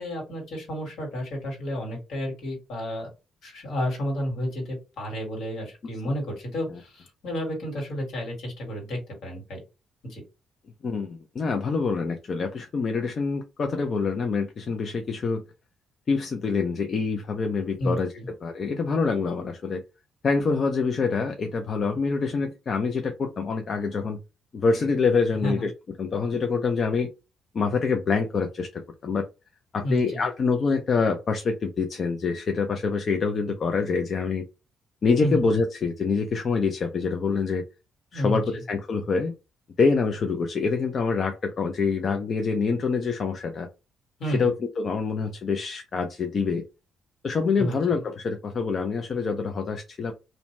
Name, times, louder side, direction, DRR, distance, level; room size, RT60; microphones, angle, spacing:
voice 1, 0.0-3.1 3.4-9.6 10.0-10.2 17.8-18.3 25.3-25.7 29.8-30.2 35.2-35.5 38.1-38.6 44.2-44.5 47.6-48.0, equal, 75° left, 0 dB, 1.6 m, -31 dB
voice 2, 10.8-15.4 16.1-18.1 18.4-19.8 20.2-24.2 24.5-25.7 26.0-27.1 27.5-29.2 29.7-34.4 35.0-37.6 38.1-39.3 39.8-43.7 44.3-46.6 47.2-50.1, left 4 dB, 50° left, 5 dB, 0.4 m, -26 dB
2.6 x 2.1 x 3.0 m, 0.28 s
cardioid pair, 90°, 0 cm